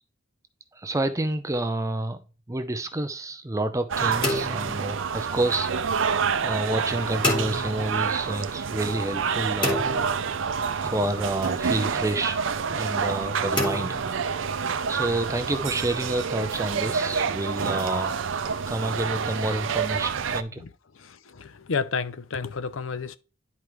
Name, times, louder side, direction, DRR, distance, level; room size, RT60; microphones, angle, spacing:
voice 1, 0.7-2.2 2.5-6.0 6.4-9.9 10.7-12.4 12.7-14.0 14.9-18.2 18.7-20.6, right 2 dB, 15° right, 0.5 m, -29 dB
sound 1, 3.9-20.4, right 6 dB, 70° right, 0.5 m, -28 dB
sound 2, 4.2-5.6 7.2-8.3 9.6-10.8 13.6-14.8, left 2 dB, 25° left, 2.5 m, -30 dB
voice 2, 20.9-23.2, left 5 dB, 80° left, 0.6 m, -31 dB
10.5 x 4.8 x 3.1 m
head